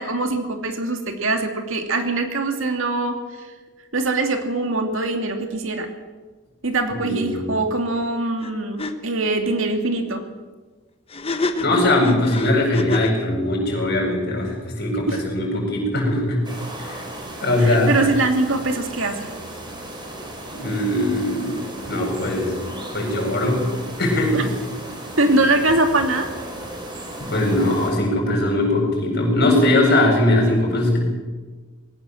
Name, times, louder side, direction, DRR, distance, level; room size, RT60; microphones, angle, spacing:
voice 1, 0.0-3.2 3.9-5.9 6.6-10.2 15.1-15.2 17.6-19.3 24.3-24.4 25.2-26.3, right 2 dB, 65° right, 5 dB, 2.5 m, -22 dB
voice 2, 7.0-7.5 11.6-16.4 16.8-17.0 17.4-18.0 20.5-21.6 21.9-22.5 22.9-23.7 24.0-24.5 25.2-25.3 27.2-31.1, left 1 dB, 50° left, 0 dB, 7.8 m, -20 dB
sound 1, 8.4-8.5 8.8-8.9 11.1-13.2, left 2 dB, 25° left, 1.2 m, -26 dB
sound 2, 16.4-27.9, right 1 dB, 20° right, 4.2 m, -35 dB
20.5 x 17.5 x 7.8 m, 1.3 s
head